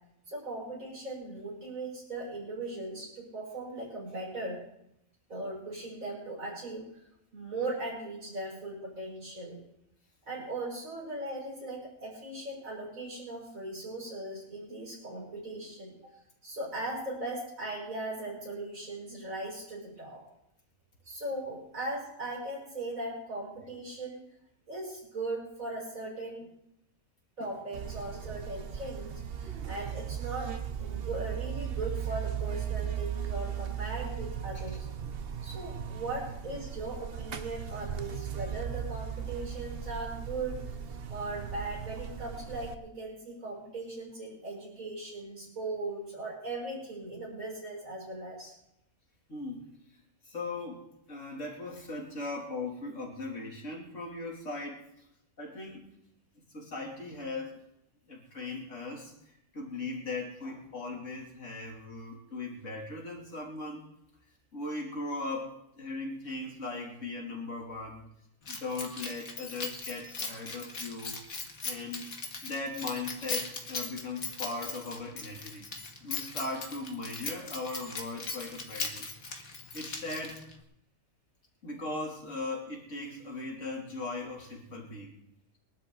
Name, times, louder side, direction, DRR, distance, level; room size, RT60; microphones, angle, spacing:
voice 1, 0.3-4.6 5.3-6.9 7.3-9.6 10.3-16.1 16.4-20.2 21.0-24.2 24.7-26.5 27.4-30.5 30.8-34.9 35.4-40.6 41.1-48.6, right 2 dB, 85° right, -5 dB, 6.1 m, -38 dB
Buzz, 27.7-42.7, right 8 dB, 50° right, 1.0 m, -37 dB
voice 2, 49.3-49.7 50.2-54.8 55.4-55.9 56.3-57.6 58.1-63.9 64.5-68.1 68.5-71.2 71.6-72.0 72.4-75.7 76.0-80.5 81.6-85.2, left 3 dB, 65° left, -1 dB, 3.5 m, -39 dB
Keys jangling, 68.5-80.6, left 4 dB, 90° left, 2.3 m, -39 dB
23.0 x 12.0 x 4.0 m, 0.79 s
omnidirectional pair, 1.4 m